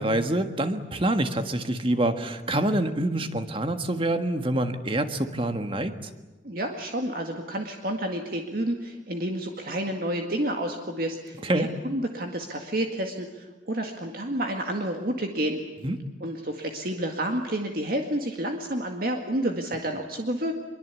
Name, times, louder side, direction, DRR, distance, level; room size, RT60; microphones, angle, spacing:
voice 1, 0.0-6.1 11.4-11.7 15.8-16.0, right 1 dB, 30° right, 8 dB, 1.6 m, -26 dB
voice 2, 6.4-15.6 16.2-20.5, right 1 dB, 50° right, 3 dB, 2.0 m, -30 dB
25.0 x 23.0 x 8.4 m, 1.2 s
head